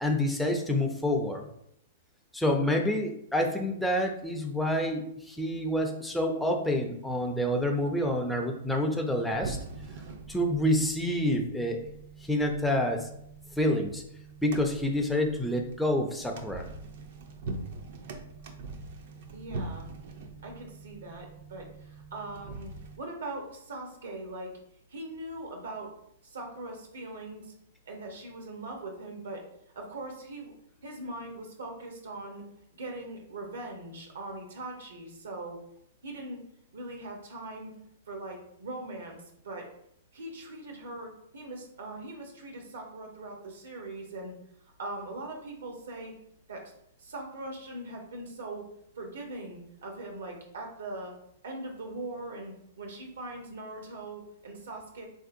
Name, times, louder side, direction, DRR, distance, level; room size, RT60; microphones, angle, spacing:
voice 1, 0.0-1.4 2.3-9.6 10.3-11.9 12.3-13.1 13.6-14.0 14.4-16.7, left 1 dB, 5° left, 2 dB, 0.4 m, -28 dB
sound 1, 9.3-23.0, right 3 dB, 60° right, 0.4 m, -43 dB
voice 2, 19.3-19.9 20.4-24.5 24.9-25.9 26.2-27.5 27.9-29.4 29.7-30.5 30.8-32.4 32.7-35.6 36.0-36.4 36.7-37.7 38.1-39.2 39.4-39.7 40.1-44.3 44.8-46.1 46.5-46.7 47.0-48.7 49.0-51.1 51.4-55.1, right 2 dB, 80° right, 2 dB, 0.8 m, -41 dB
3.3 x 2.6 x 2.5 m, 0.73 s
hypercardioid pair, 135°, 0 cm